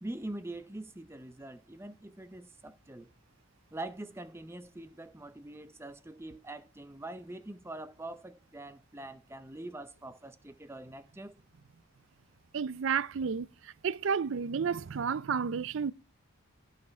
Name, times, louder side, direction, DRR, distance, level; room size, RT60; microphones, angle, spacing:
voice 1, 0.0-3.1 3.7-11.4, right 2 dB, 10° right, 0.6 m, -44 dB
voice 2, 12.5-13.5 13.8-15.9, right 6 dB, 65° right, 0.4 m, -31 dB
15.5 x 5.7 x 4.5 m
head